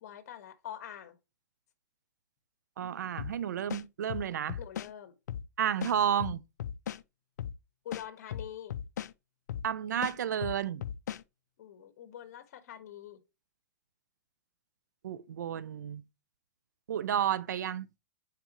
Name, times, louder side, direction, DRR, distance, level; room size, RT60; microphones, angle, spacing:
voice 1, 0.0-1.2 4.6-5.1 7.8-8.7 11.6-13.2, left 10 dB, 65° left, 1.6 m, -45 dB
voice 2, 2.8-4.6 5.6-6.4 9.6-10.8 15.0-16.0 16.9-17.9, right 9 dB, 85° right, 0.7 m, -31 dB
sound 1, 3.2-3.4 3.7-4.9 5.3-5.5 5.8-7.0 7.4-7.6 7.9-9.1 9.5-9.7 10.0-11.2, left 9 dB, 80° left, 0.5 m, -37 dB
9.6 x 5.1 x 3.1 m
hypercardioid pair, 140°, 9 cm